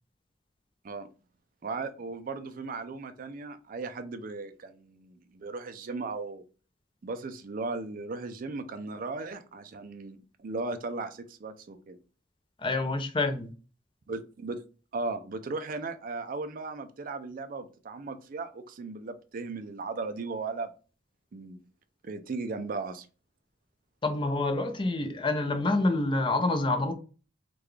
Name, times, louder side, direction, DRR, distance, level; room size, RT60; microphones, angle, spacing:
voice 1, 1.6-6.4 7.0-12.0 14.1-14.6 14.9-20.7 21.3-21.6 22.0-23.1, right 3 dB, 45° right, 0.4 m, -37 dB
voice 2, 12.6-13.5 24.0-27.0, left 2 dB, 25° left, 0.4 m, -27 dB
3.7 x 2.3 x 3.2 m
head